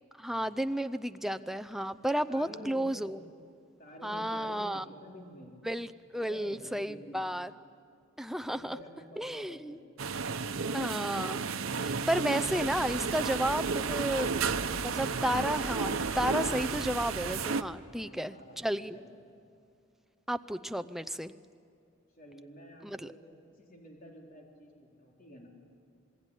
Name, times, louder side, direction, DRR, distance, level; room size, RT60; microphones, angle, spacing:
voice 1, 0.2-3.2 4.0-4.8 5.6-7.5 8.2-8.8 9.2-9.8 10.7-11.4 11.8-14.3 14.8-19.0 20.3-21.3 22.8-23.1, equal, ahead, 11 dB, 0.6 m, -32 dB
voice 2, 2.3-3.2 3.8-5.5 6.1-7.3 8.5-9.8 17.9-19.2 22.2-25.5, equal, 45° left, -1 dB, 4.1 m, -50 dB
sound 1, 10.0-17.6, right 5 dB, 90° right, 0.9 m, -32 dB
sound 2, 12.4-17.4, equal, 35° right, 3.4 m, -44 dB
27.0 x 21.0 x 9.9 m, 2.4 s
head